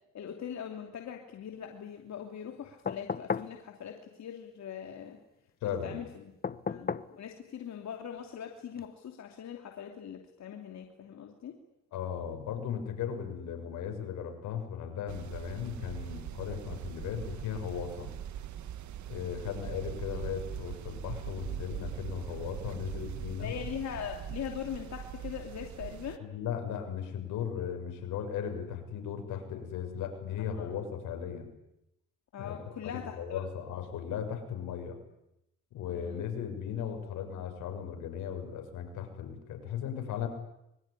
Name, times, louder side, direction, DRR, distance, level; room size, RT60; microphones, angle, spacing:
voice 1, 0.1-5.2 5.8-6.3 6.7-11.5 23.4-26.2 30.6-30.7 32.3-33.4 35.9-36.2, left 8 dB, 65° left, 3 dB, 3.0 m, -41 dB
sound 1, 2.9-3.6 6.4-7.1 8.8-8.9, left 5 dB, 30° left, 1.1 m, -34 dB
voice 2, 5.6-6.0 11.9-18.1 19.1-23.5 26.2-31.5 32.4-32.7 33.1-35.0 35.7-40.3, left 8 dB, 90° left, 5 dB, 6.4 m, -37 dB
sound 2, 15.1-26.2, right 10 dB, 70° right, 1.6 m, -41 dB
25.5 x 23.0 x 9.9 m, 0.86 s
cardioid pair, 90°, 30 cm